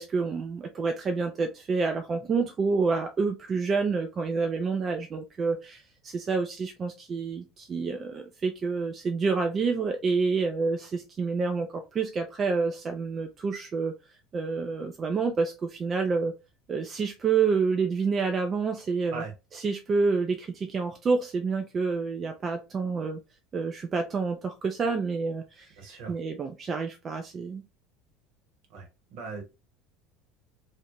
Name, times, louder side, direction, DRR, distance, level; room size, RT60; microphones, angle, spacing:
voice 1, 0.0-13.9 14.3-16.3 16.7-19.2 19.5-23.2 23.5-25.7 26.1-27.6, right 4 dB, 35° right, 6 dB, 0.3 m, -28 dB
voice 2, 25.8-26.1 28.7-29.4, right 4 dB, 65° right, 2 dB, 0.9 m, -39 dB
2.5 x 2.1 x 2.9 m, 0.28 s
hypercardioid pair, 70°, 0 cm